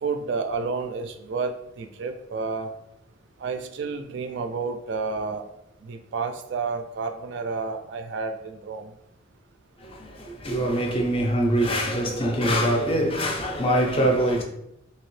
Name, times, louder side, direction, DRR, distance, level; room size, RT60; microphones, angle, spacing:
voice 1, 0.0-2.7 3.4-5.5 5.8-8.9, right 4 dB, 60° right, 0.3 m, -30 dB
voice 2, 9.8-14.4, right 1 dB, 30° left, 0.4 m, -23 dB
2.8 x 2.7 x 3.1 m
head